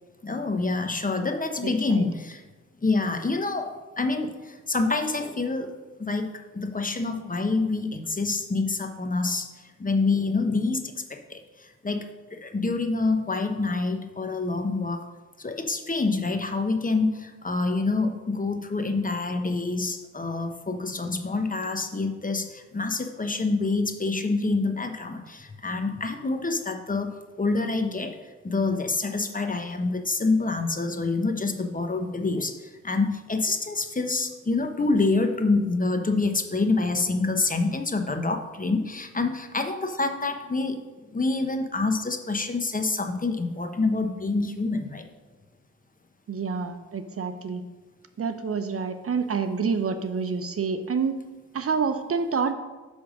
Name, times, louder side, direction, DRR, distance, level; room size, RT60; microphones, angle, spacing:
voice 1, 0.2-2.4 2.8-5.7 6.0-9.5 9.8-15.1 15.4-28.2 28.4-40.8 41.1-45.1, left 3 dB, 25° left, 6 dB, 0.9 m, -27 dB
voice 2, 46.3-47.6 48.2-51.2 51.5-52.5, right 5 dB, 50° right, 8 dB, 0.7 m, -27 dB
10.0 x 3.5 x 6.3 m, 1.2 s
cardioid pair, 65°, 30 cm